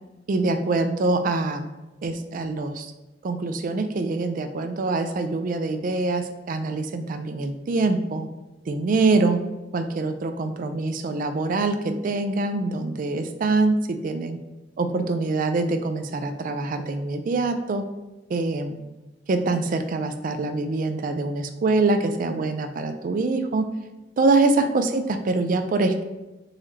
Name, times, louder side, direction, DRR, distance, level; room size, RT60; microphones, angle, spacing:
voice 1, 0.3-1.7 2.0-2.9 3.2-8.3 8.7-9.4 9.7-14.4 14.8-17.8 18.3-18.8 19.3-23.7 24.2-26.0, right 3 dB, 45° right, 7 dB, 0.3 m, -24 dB
3.9 x 3.0 x 2.7 m, 1.1 s
head